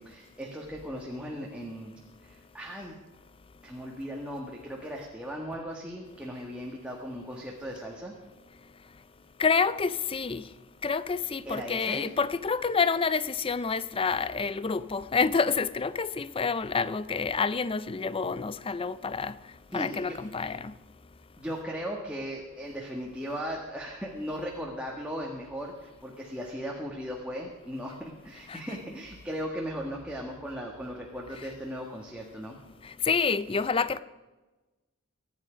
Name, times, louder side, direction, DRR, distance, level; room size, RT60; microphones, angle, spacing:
voice 1, 0.0-1.9 2.2-3.0 3.6-8.1 11.5-12.1 19.7-20.5 21.4-32.6, equal, 5° right, 1.6 m, -37 dB
voice 2, 9.4-10.4 10.8-19.3 19.7-20.7 28.5-28.6 33.1-34.0, left 5 dB, 25° left, 0.4 m, -28 dB
24.0 x 9.4 x 5.1 m
head